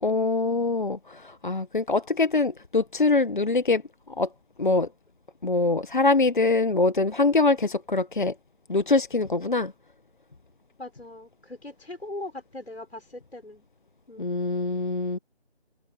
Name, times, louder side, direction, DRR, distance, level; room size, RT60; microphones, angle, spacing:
voice 1, 0.0-3.8 4.2-4.3 4.6-4.9 5.4-8.3 8.7-9.7 14.2-15.2, left 3 dB, 50° left, 1.3 m, -23 dB
voice 2, 10.8-13.6 14.1-14.3, left 2 dB, 75° left, 6.7 m, -40 dB
figure-of-eight pair, 160°, 32 cm